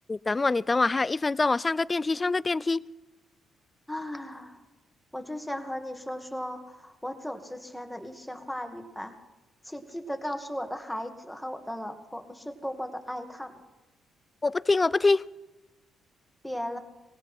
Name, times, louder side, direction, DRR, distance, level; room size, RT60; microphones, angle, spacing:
voice 1, 0.1-2.8 14.4-15.2, left 3 dB, 30° left, 0.4 m, -25 dB
voice 2, 3.9-4.6 5.1-9.2 9.6-13.6 16.4-16.8, equal, 5° left, 2.2 m, -36 dB
19.5 x 17.0 x 4.5 m
supercardioid pair, 55°, 0 cm